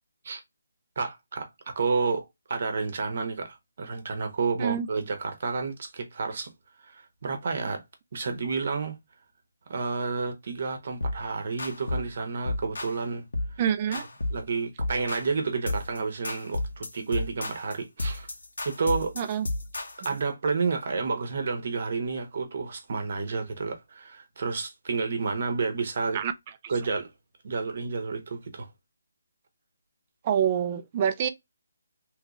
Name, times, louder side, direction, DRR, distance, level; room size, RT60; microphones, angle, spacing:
voice 1, 1.0-1.5 1.8-6.5 6.8-7.8 8.1-9.0 9.7-13.2 14.3-18.3 18.6-19.1 20.0-26.2 26.7-27.1 27.4-28.7, right 4 dB, 50° right, 0.9 m, -30 dB
sound 1, 11.0-11.2 11.6-12.1 12.5-13.0 13.3-13.6 13.9-14.5 14.8-15.3 15.7-16.0 16.2-20.2, left 2 dB, 80° left, 1.0 m, -32 dB
voice 2, 13.6-14.0 19.2-19.5 26.1-26.3 26.6-26.7 30.2-31.3, right 8 dB, 25° right, 0.4 m, -26 dB
3.1 x 2.5 x 3.0 m
hypercardioid pair, 165°, 0 cm